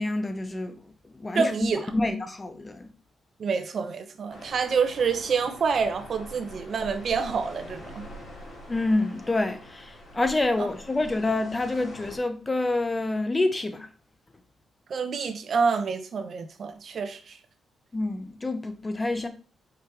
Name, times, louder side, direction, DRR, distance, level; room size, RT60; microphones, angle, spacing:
voice 1, 0.0-1.5 1.9-2.9 8.7-13.9 17.9-19.3, left 2 dB, 20° left, 0.9 m, -27 dB
voice 2, 1.3-1.8 3.4-8.0 10.6-10.7 14.9-17.4, right 5 dB, 55° right, 1.0 m, -27 dB
sound 1, 4.3-12.2, left 1 dB, 50° left, 3.4 m, -45 dB
5.2 x 5.0 x 4.6 m
cardioid pair, 100°, 0 cm